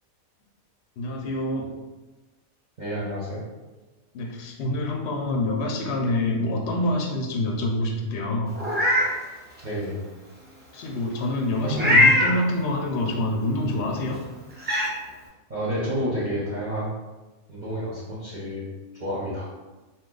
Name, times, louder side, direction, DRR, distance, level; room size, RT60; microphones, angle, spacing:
voice 1, 1.0-1.7 4.1-8.6 10.7-14.2, left 1 dB, 65° left, 0 dB, 0.7 m, -26 dB
voice 2, 2.8-3.4 9.6-10.0 11.6-12.0 15.5-16.9 17.5-18.6 19.0-19.5, equal, 40° right, -9 dB, 0.8 m, -29 dB
Meow, 8.5-9.1 9.6-9.7 11.7-12.3 13.9-14.0 14.6-14.9, left 1 dB, 10° right, 0.6 m, -19 dB
2.8 x 2.2 x 3.7 m, 1.2 s
omnidirectional pair, 1.4 m